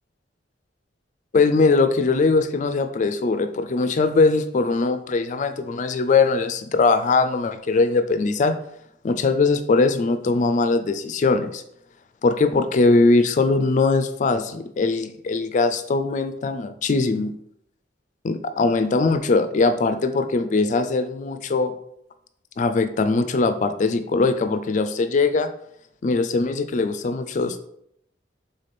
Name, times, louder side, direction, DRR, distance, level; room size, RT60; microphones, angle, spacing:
voice 1, 1.3-8.6 9.0-11.6 12.2-17.3 18.2-21.8 22.6-25.5 26.0-27.6, left 3 dB, 45° left, 10 dB, 0.3 m, -21 dB
3.8 x 3.3 x 4.1 m, 0.74 s
head